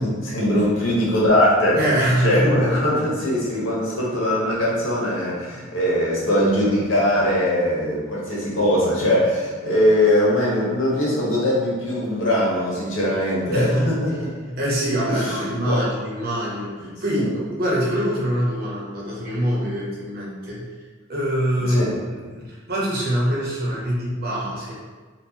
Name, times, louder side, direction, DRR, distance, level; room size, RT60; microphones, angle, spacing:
voice 1, 0.0-1.8 2.2-14.3 15.1-15.8 17.1-17.2 21.7-21.9, left 1 dB, 85° left, -5 dB, 1.2 m, -21 dB
voice 2, 1.7-2.7 13.5-14.2 14.5-20.6 21.1-24.7, equal, 50° right, -6 dB, 1.1 m, -24 dB
4.4 x 2.4 x 2.8 m, 1.4 s
head